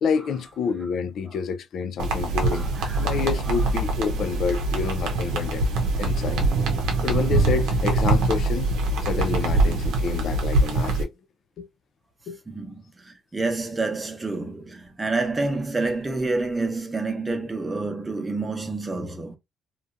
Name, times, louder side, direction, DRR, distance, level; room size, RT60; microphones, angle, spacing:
voice 1, 0.0-2.7 3.0-5.6 6.0-6.4 7.0-8.7 9.0-11.1 11.6-11.7 12.3-12.4, left 5 dB, 70° left, 0.4 m, -28 dB
sound 1, 2.0-11.0, right 2 dB, 90° right, 0.6 m, -23 dB
voice 2, 2.5-3.2 6.8-6.9 12.5-19.4, right 3 dB, 20° right, 0.8 m, -28 dB
2.7 x 2.3 x 2.4 m
cardioid pair, 90°, 0 cm